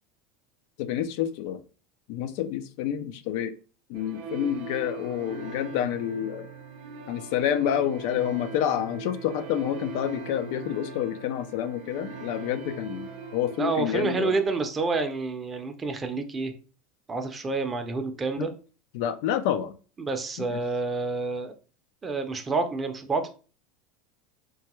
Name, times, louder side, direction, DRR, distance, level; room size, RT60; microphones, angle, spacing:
voice 1, 0.8-1.6 2.1-3.5 3.9-6.5 7.1-14.3 18.4-18.5 18.9-19.7 20.5-20.6, left 10 dB, 70° left, 0.3 m, -28 dB
sound 1, 3.9-14.5, right 4 dB, 70° right, 0.6 m, -40 dB
voice 2, 13.6-16.5 17.1-18.5 20.0-21.5 22.0-23.3, right 3 dB, 20° right, 0.5 m, -28 dB
3.2 x 2.2 x 3.0 m
supercardioid pair, 120°, 0 cm